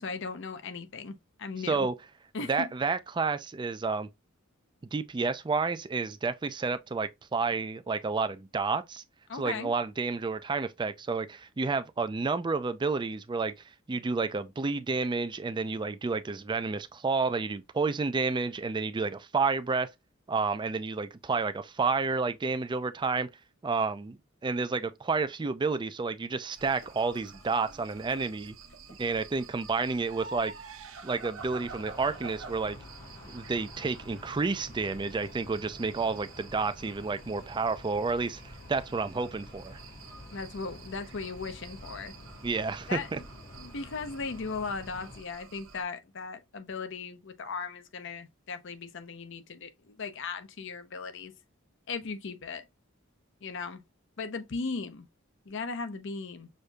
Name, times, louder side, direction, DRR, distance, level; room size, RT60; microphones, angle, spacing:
voice 1, 0.0-1.9 2.3-2.7 9.3-9.7 40.3-42.1 42.9-43.1 43.6-51.3 51.9-52.6 53.4-53.8 54.2-55.0 55.5-56.5, left 4 dB, 65° left, 0.7 m, -37 dB
voice 2, 2.4-4.1 4.9-9.0 9.3-13.5 13.9-19.9 20.3-23.3 23.6-28.5 29.0-30.5 31.0-32.8 33.3-38.4 38.7-39.8 42.4-43.2, right 4 dB, 25° right, 0.4 m, -30 dB
sound 1, 26.4-29.5, left 2 dB, 85° left, 2.3 m, -59 dB
sound 2, 26.6-45.8, right 4 dB, 80° right, 0.6 m, -49 dB
sound 3, 31.4-45.2, left 1 dB, 40° left, 1.3 m, -49 dB
6.4 x 2.7 x 2.3 m
head